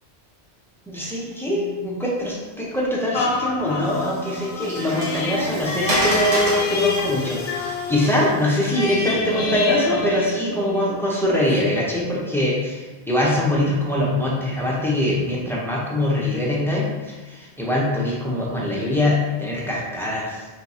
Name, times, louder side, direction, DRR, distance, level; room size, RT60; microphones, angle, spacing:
voice 1, 0.9-20.5, left 1 dB, 5° left, -5 dB, 0.6 m, -23 dB
sound 1, 3.1-11.0 11.5-11.6, left 3 dB, 70° left, 0.8 m, -26 dB
Water, 3.7-9.0, equal, 70° right, 1.3 m, -30 dB
4.5 x 3.4 x 2.8 m, 1.2 s
omnidirectional pair, 1.1 m